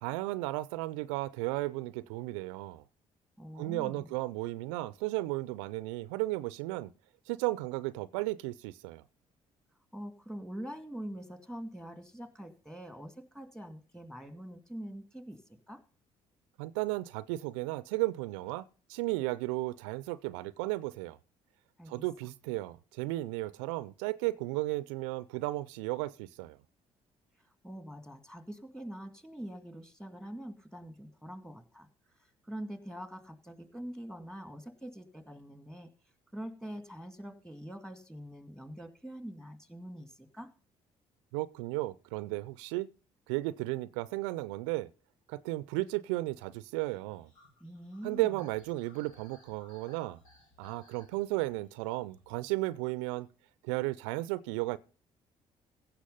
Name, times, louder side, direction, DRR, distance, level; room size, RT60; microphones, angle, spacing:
voice 1, 0.0-2.8 3.5-6.9 7.3-9.0 16.6-21.2 21.9-26.6 41.3-42.9 43.3-44.9 45.3-47.3 48.0-50.2 50.6-53.3 53.6-54.8, right 19 dB, 80° right, 0.5 m, -34 dB
voice 2, 3.4-4.1 9.9-15.8 21.8-22.0 27.4-31.9 32.4-35.9 36.3-40.5 47.6-48.4, equal, 5° left, 2.3 m, -44 dB
sound 1, 46.8-53.3, left 1 dB, 90° left, 2.9 m, -62 dB
16.0 x 6.0 x 5.5 m
hypercardioid pair, 50°, 16 cm